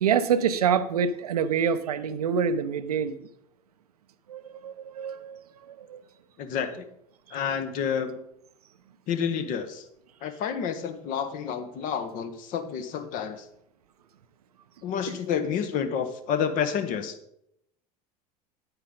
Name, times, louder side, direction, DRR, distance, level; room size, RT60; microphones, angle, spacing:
voice 1, 0.0-3.2 4.3-6.0, right 7 dB, 70° right, 12 dB, 0.6 m, -26 dB
voice 2, 6.4-6.8 7.3-8.2 9.1-9.8 10.2-13.5 14.8-17.2, left 7 dB, 40° left, 9 dB, 1.0 m, -29 dB
8.9 x 8.9 x 3.8 m, 0.75 s
figure-of-eight pair, 80°, 20 cm